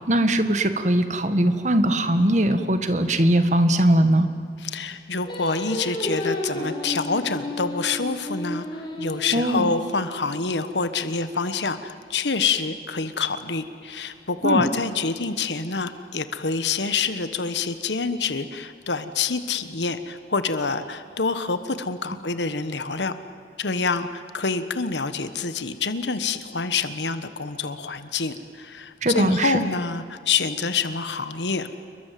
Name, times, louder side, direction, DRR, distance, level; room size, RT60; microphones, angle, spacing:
voice 1, 0.0-4.3 9.3-9.7 14.4-14.6 29.0-29.6, right 1 dB, 45° right, 9 dB, 1.7 m, -20 dB
voice 2, 4.6-23.1 23.6-31.7, left 4 dB, 85° left, 11 dB, 1.3 m, -27 dB
Singing, 5.3-10.5, left 1 dB, 25° left, 5.0 m, -32 dB
28.5 x 22.5 x 7.7 m, 2.3 s
head